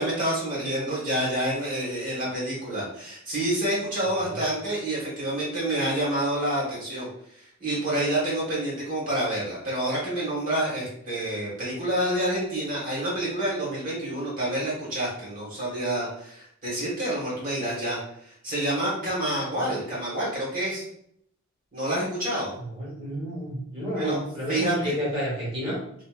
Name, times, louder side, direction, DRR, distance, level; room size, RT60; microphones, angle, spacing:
voice 1, 0.0-20.9 21.7-22.5 23.9-24.2 24.5-24.9, right 1 dB, 40° right, -6 dB, 1.4 m, -28 dB
voice 2, 4.0-4.3 19.6-19.7 22.8-25.8, equal, 25° right, -7 dB, 1.2 m, -31 dB
3.0 x 2.6 x 2.4 m, 0.70 s
head